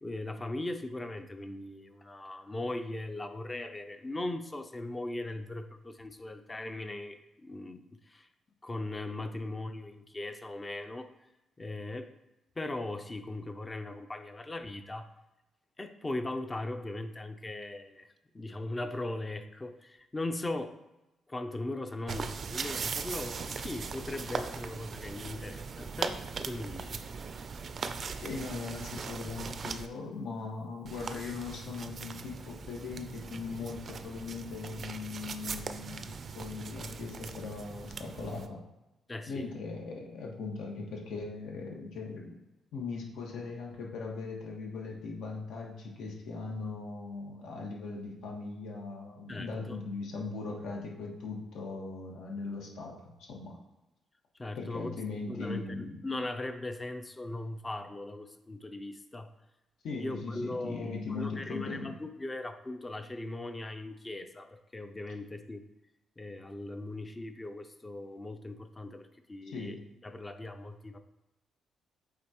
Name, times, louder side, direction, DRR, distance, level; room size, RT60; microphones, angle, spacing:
voice 1, 0.0-8.3 8.6-11.1 11.6-12.1 12.6-15.1 15.8-18.1 18.3-20.8 21.3-27.0 39.1-39.5 49.3-49.8 54.4-54.9 55.3-59.3 60.0-65.6 66.2-71.0, left 2 dB, 15° left, 8 dB, 0.5 m, -39 dB
sound 1, 22.1-29.9 30.9-38.5, right 5 dB, 40° right, 0.4 m, -39 dB
voice 2, 28.2-38.6 39.3-42.3 42.7-53.6 54.6-56.0 59.8-61.9 69.4-69.8, left 4 dB, 75° left, -1 dB, 1.5 m, -39 dB
8.5 x 3.8 x 3.0 m, 0.99 s
cardioid pair, 135°, 0 cm